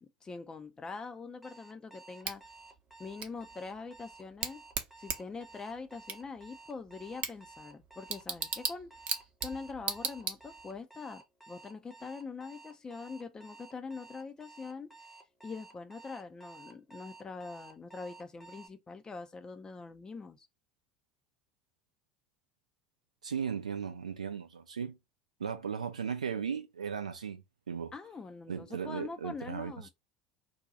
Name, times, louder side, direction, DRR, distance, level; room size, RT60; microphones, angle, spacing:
voice 1, 0.0-2.4 3.0-4.7 5.0-8.9 9.4-14.9 15.4-20.5 27.9-29.9, left 4 dB, 20° left, 0.5 m, -43 dB
Alarm, 1.4-18.7, right 3 dB, 5° right, 0.8 m, -53 dB
Bicycle / Tick, 2.2-10.8, right 6 dB, 40° right, 0.7 m, -39 dB
voice 2, 23.2-25.0 25.4-27.9 28.5-29.9, right 7 dB, 80° right, 0.4 m, -37 dB
2.7 x 2.2 x 3.8 m
figure-of-eight pair, 70°, 4 cm